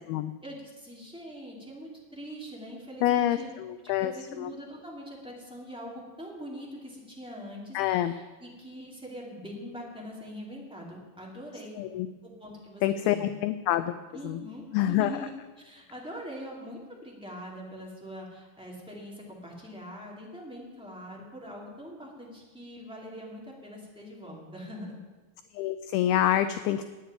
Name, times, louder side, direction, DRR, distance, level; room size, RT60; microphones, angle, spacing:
voice 1, 0.4-3.5 3.8-11.8 12.2-13.3 14.1-15.3 15.6-25.0, equal, ahead, -4 dB, 1.2 m, -43 dB
voice 2, 3.0-4.1 4.4-4.5 7.7-8.1 11.8-12.1 12.8-14.0 14.2-14.4 14.7-15.3 25.5-26.9, left 12 dB, 90° left, 11 dB, 2.2 m, -26 dB
9.6 x 9.4 x 9.0 m, 1.3 s
omnidirectional pair, 4.9 m